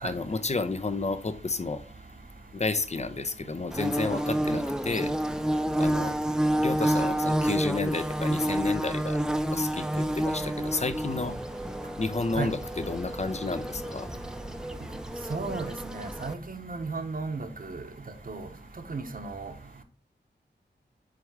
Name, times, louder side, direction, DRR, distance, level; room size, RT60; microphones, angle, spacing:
voice 1, 0.0-1.8 2.5-5.1 5.8-6.1 6.6-9.2 9.5-11.4 12.0-14.1, left 3 dB, 35° left, 0.7 m, -31 dB
Bird / Buzz, 3.7-16.3, right 1 dB, 5° right, 0.5 m, -29 dB
voice 2, 15.3-17.8 18.3-18.5 18.9-19.5, right 4 dB, 50° right, 1.1 m, -34 dB
7.6 x 3.5 x 4.8 m
wide cardioid pair, 85°, 19 cm